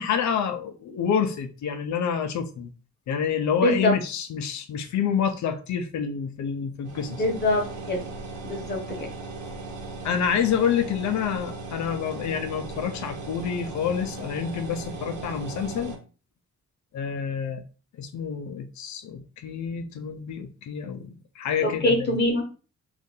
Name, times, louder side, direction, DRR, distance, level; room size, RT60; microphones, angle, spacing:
voice 1, 0.0-2.7 3.1-7.2 10.0-15.9 16.9-17.6 17.9-22.1, left 7 dB, 75° left, 0.6 m, -28 dB
voice 2, 3.6-3.9 7.1-8.0 8.5-9.0 21.6-22.5, left 1 dB, 35° left, 0.9 m, -24 dB
sound 1, 6.8-16.0, right 3 dB, 90° right, 0.9 m, -37 dB
2.7 x 2.6 x 3.7 m
wide cardioid pair, 160°, 29 cm